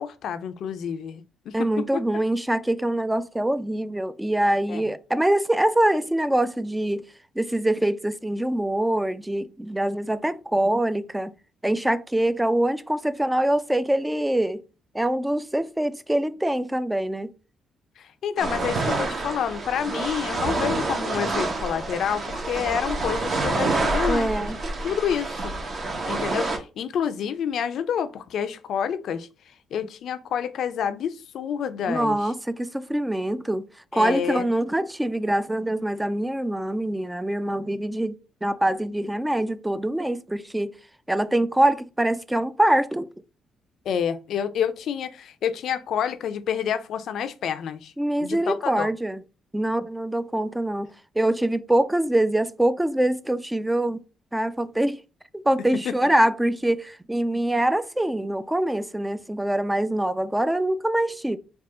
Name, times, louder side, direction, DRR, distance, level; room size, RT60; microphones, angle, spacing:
voice 1, 0.0-1.7 1.9-2.0 4.7-4.8 18.0-24.5 24.8-25.5 26.1-29.3 29.7-32.2 33.9-34.5 43.9-47.9 48.2-48.9 55.9-56.0, left 8 dB, 70° left, 0.5 m, -28 dB
voice 2, 1.5-7.0 7.4-11.3 11.6-14.6 14.9-17.3 24.1-24.6 31.9-33.6 33.9-40.7 41.1-43.1 48.0-49.2 49.5-50.9 51.2-54.0 54.3-55.0 55.3-61.4, right 1 dB, 10° right, 0.4 m, -24 dB
sound 1, 18.4-26.6, right 2 dB, 45° right, 1.0 m, -27 dB
3.5 x 2.4 x 3.7 m
cardioid pair, 75°, 0 cm